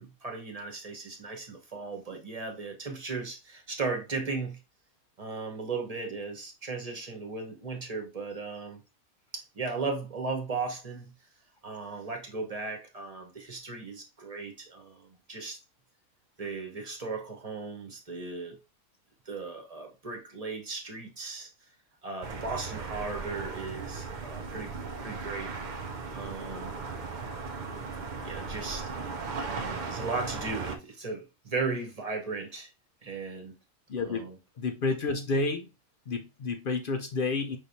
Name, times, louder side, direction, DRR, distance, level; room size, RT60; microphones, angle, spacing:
voice 1, 0.0-4.6 5.2-8.8 9.3-11.1 11.6-15.6 16.4-18.6 19.3-21.5 22.0-25.6 26.1-26.8 28.2-28.9 29.4-32.7 33.0-33.5 34.0-34.4, right 4 dB, 30° right, 1.0 m, -36 dB
sound 1, 22.2-30.8, right 4 dB, 50° right, 0.5 m, -37 dB
voice 2, 33.9-34.3 34.6-35.7 36.1-37.6, left 3 dB, 60° left, 0.5 m, -30 dB
5.4 x 3.3 x 2.6 m
omnidirectional pair, 1.5 m